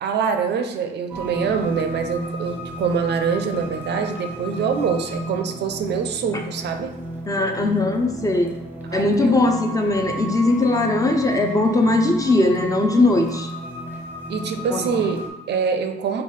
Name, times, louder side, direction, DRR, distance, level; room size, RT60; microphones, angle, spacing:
voice 1, 0.0-6.9 8.8-9.5 14.3-16.2, right 6 dB, 60° right, 6 dB, 0.4 m, -24 dB
sound 1, 1.1-15.3, right 1 dB, 10° right, 0.8 m, -33 dB
voice 2, 7.3-8.5 8.9-13.5 14.7-14.8, left 2 dB, 15° left, 3 dB, 0.5 m, -19 dB
3.9 x 2.3 x 3.1 m, 1.1 s
cardioid pair, 90°, 20 cm